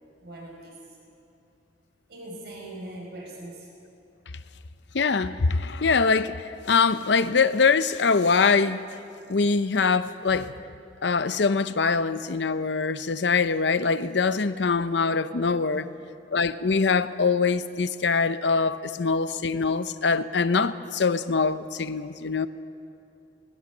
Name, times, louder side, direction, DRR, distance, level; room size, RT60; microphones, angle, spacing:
voice 1, 0.2-1.0 2.1-3.7 15.7-15.9, right 1 dB, 65° right, 5.4 m, -41 dB
voice 2, 4.9-8.8 9.3-10.5 11.0-15.9 16.3-22.5, left 4 dB, 70° left, 0.7 m, -23 dB
19.5 x 19.5 x 7.2 m
head